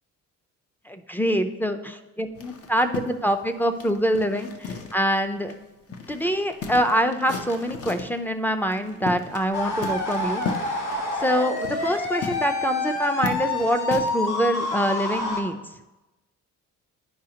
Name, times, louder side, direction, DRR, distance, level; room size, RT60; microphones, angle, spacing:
voice 1, 0.9-5.5 6.1-10.4 10.7-10.8 11.2-15.6, equal, 5° left, 8 dB, 0.5 m, -25 dB
sound 1, 2.3-5.2 5.5-5.6 5.9-8.2 8.7-9.5 9.8-14.3, left 5 dB, 50° left, 0.7 m, -35 dB
sound 2, 9.5-15.4, left 2 dB, 85° left, 1.1 m, -28 dB
10.0 x 4.8 x 2.8 m, 1.1 s
cardioid pair, 90°, 30 cm